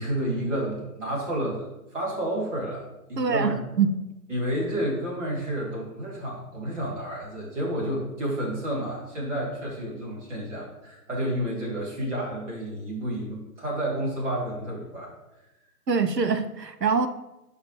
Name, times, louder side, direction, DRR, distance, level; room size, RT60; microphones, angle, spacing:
voice 1, 0.0-3.5 4.3-15.1, right 1 dB, 45° right, -3 dB, 2.7 m, -30 dB
voice 2, 3.2-3.9 15.9-17.1, right 5 dB, 80° right, 9 dB, 0.8 m, -24 dB
11.5 x 5.1 x 3.1 m, 0.97 s
figure-of-eight pair, 155°, 48 cm